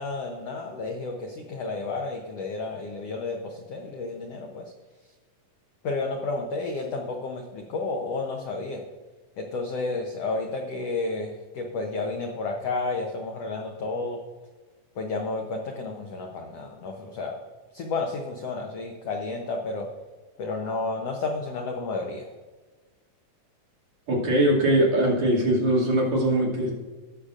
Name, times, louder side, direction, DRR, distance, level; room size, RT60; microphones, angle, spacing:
voice 1, 0.0-4.7 5.8-8.8 9.4-14.2 15.0-17.4 17.7-19.9 20.4-22.3, left 3 dB, 75° left, 2 dB, 1.4 m, -31 dB
voice 2, 24.1-26.7, right 1 dB, 55° right, -5 dB, 3.5 m, -21 dB
18.0 x 6.7 x 2.5 m, 1.3 s
omnidirectional pair, 3.8 m